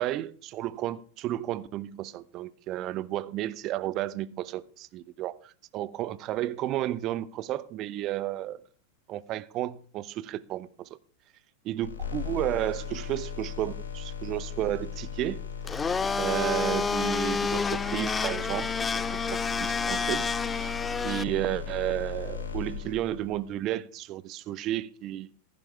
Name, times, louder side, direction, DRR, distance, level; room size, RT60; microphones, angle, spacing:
voice 1, 0.0-8.6 9.1-10.9 11.7-15.4 16.2-18.7 19.1-20.7 21.0-25.3, right 14 dB, 35° right, 0.8 m, -32 dB
sound 1, 11.8-23.5, left 7 dB, 70° left, 5.2 m, -37 dB
Domestic sounds home sounds, 15.6-21.2, left 5 dB, 15° left, 0.5 m, -29 dB
15.0 x 10.5 x 3.4 m
figure-of-eight pair, 90°, 0 cm